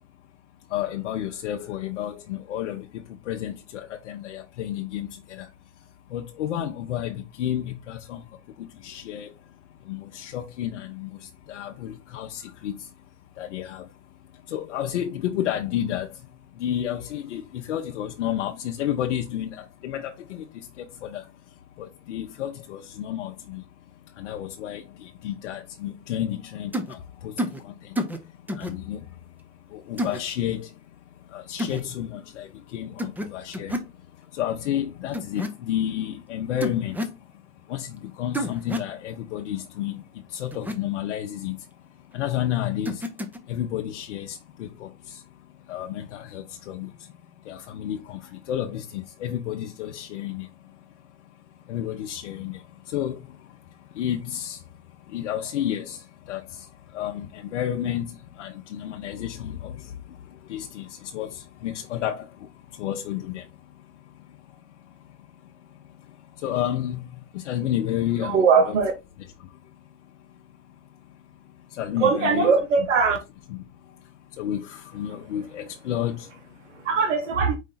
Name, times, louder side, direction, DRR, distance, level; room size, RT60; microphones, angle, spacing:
voice 1, 0.6-68.7 69.4-72.5 73.5-76.9, left 11 dB, 75° left, 0.7 m, -32 dB
sound 1, 26.7-26.9 27.4-27.6 27.9-28.2 28.5-28.7 30.0-30.2 31.6-31.8 33.0-33.3 33.5-33.9 35.1-35.5 36.6-37.2 38.3-38.9 40.5-40.7 42.8-43.4, equal, 5° right, 0.6 m, -29 dB
voice 2, 68.2-68.9 72.0-73.2 76.7-77.6, right 5 dB, 85° right, 1.1 m, -20 dB
5.0 x 2.7 x 3.8 m
hypercardioid pair, 110°, 36 cm